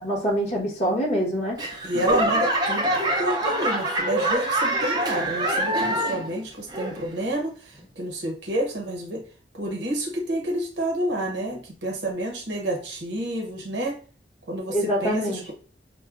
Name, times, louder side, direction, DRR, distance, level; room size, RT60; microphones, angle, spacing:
voice 1, 0.0-1.6 14.7-15.4, equal, 35° left, -3 dB, 1.2 m, -25 dB
Laughter / Clapping / Crowd, 1.6-6.4 6.7-7.2 7.8-7.9, right 1 dB, 20° right, 0.5 m, -25 dB
voice 2, 1.8-7.5 8.0-9.2 9.5-14.0 14.5-15.5, right 1 dB, 70° right, 2 dB, 0.9 m, -29 dB
5.3 x 2.2 x 2.4 m, 0.40 s
head